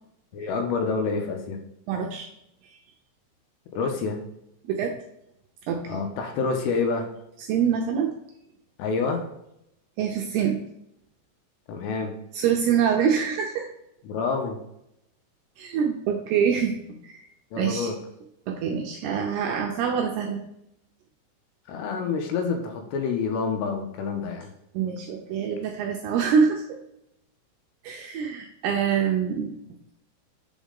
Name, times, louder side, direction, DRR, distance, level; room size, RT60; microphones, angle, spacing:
voice 1, 0.3-1.6 3.7-4.2 5.9-7.1 8.8-9.3 11.7-12.1 14.1-14.6 17.5-18.0 21.7-24.5, left 4 dB, 80° left, 4 dB, 2.8 m, -27 dB
voice 2, 1.9-2.3 4.6-4.9 5.7-6.0 7.4-8.1 10.0-10.6 12.3-13.7 15.6-17.2 17.6-17.9 18.5-20.4 24.7-26.8 27.8-29.5, right 7 dB, 80° right, 2 dB, 2.4 m, -25 dB
7.2 x 4.1 x 3.7 m, 0.80 s
omnidirectional pair, 5.2 m